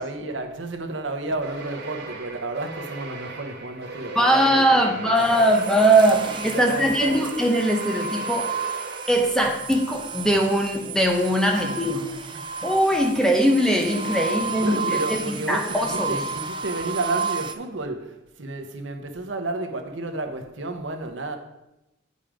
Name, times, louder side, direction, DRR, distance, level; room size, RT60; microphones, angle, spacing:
voice 1, 0.0-5.4 6.5-7.2 11.5-11.7 14.1-21.4, right 2 dB, 70° right, 0.9 m, -32 dB
sound 1, 1.4-9.7, right 2 dB, 55° right, 1.2 m, -37 dB
voice 2, 4.2-8.5 9.1-12.1 12.6-16.2, right 1 dB, 5° left, 0.8 m, -21 dB
sound 2, 5.1-17.5, right 5 dB, 25° right, 0.5 m, -32 dB
8.8 x 5.5 x 4.9 m
head